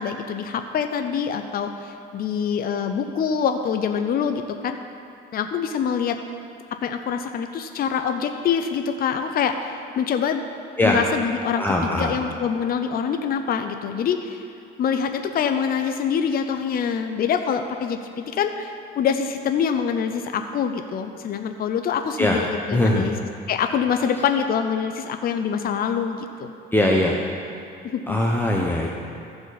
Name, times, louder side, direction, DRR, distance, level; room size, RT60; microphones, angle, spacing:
voice 1, 0.0-4.8 5.3-6.2 6.8-10.4 10.8-14.4 14.8-23.2 23.5-26.6 27.9-28.2, left 7 dB, 50° left, 6 dB, 0.6 m, -25 dB
voice 2, 11.6-12.1 22.2-22.4 22.7-23.1 26.7-27.2 28.1-28.9, left 1 dB, 10° left, -2 dB, 0.8 m, -21 dB
14.5 x 4.9 x 4.1 m, 2.7 s
cardioid pair, 95°, 20 cm